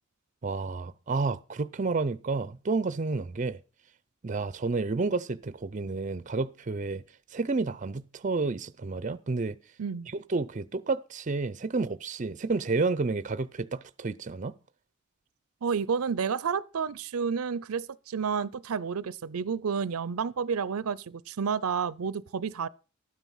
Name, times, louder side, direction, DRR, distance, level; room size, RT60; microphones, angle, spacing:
voice 1, 0.4-3.6 4.2-7.0 7.3-9.5 10.3-14.5, right 3 dB, 35° right, 0.5 m, -30 dB
voice 2, 15.6-22.7, right 6 dB, 80° right, 0.5 m, -30 dB
12.5 x 9.2 x 5.6 m
head